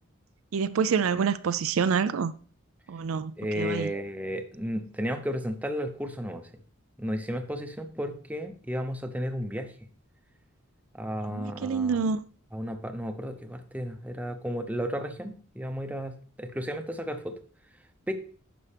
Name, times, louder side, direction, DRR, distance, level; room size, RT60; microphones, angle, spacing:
voice 1, 0.5-2.3 2.9-3.9 11.3-12.2, right 6 dB, 80° right, 0.4 m, -27 dB
voice 2, 3.4-6.5 7.0-9.7 10.9-12.0 12.5-17.4 18.1-18.2, equal, 5° right, 0.7 m, -33 dB
9.8 x 6.1 x 3.4 m
head